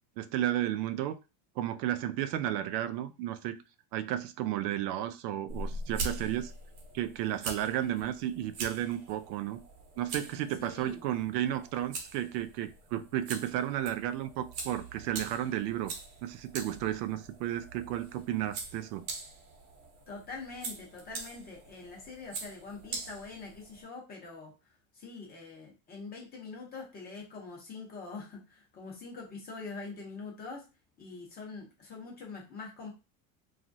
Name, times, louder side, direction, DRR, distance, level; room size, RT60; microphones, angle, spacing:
voice 1, 0.2-1.2 1.6-3.6 3.9-6.5 6.9-9.6 10.0-15.9 16.2-19.0, right 12 dB, 80° right, 0.5 m, -33 dB
sound 1, 5.5-23.8, right 3 dB, 60° right, 0.9 m, -43 dB
voice 2, 10.6-11.1 20.1-24.5 24.9-30.7 31.0-32.9, left 4 dB, 20° left, 0.7 m, -44 dB
2.9 x 2.4 x 2.6 m
cardioid pair, 170°, 47 cm